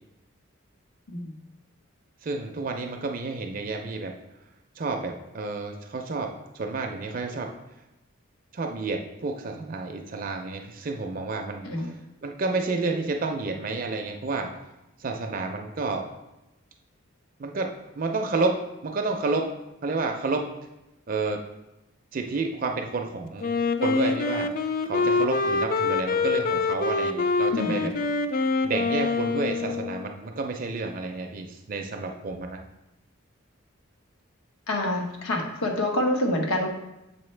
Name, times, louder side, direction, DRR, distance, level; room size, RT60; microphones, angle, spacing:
voice 1, 2.2-4.1 4.8-7.5 8.5-11.9 12.2-14.5 15.0-16.1 17.4-18.6 18.8-19.5 19.8-20.4 21.1-21.4 22.1-23.5 23.8-24.5 24.8-27.9 28.6-32.6, right 3 dB, 40° right, 4 dB, 0.4 m, -30 dB
Wind instrument woodwind instrument, 23.4-30.1, left 4 dB, 40° left, 0.3 m, -25 dB
voice 2, 27.5-27.9 34.7-36.7, left 1 dB, 85° left, 2 dB, 1.1 m, -27 dB
6.9 x 4.2 x 3.2 m, 0.95 s
head